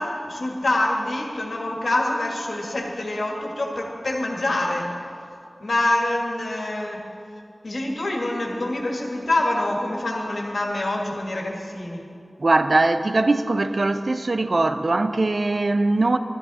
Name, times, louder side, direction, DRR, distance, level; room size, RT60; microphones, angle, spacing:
voice 1, 0.0-4.9 5.6-7.1 7.6-12.1, left 1 dB, 85° left, 1.8 m, -26 dB
voice 2, 12.4-16.2, right 2 dB, 65° right, 0.5 m, -21 dB
13.0 x 11.5 x 4.1 m
wide cardioid pair, 70°, 0 cm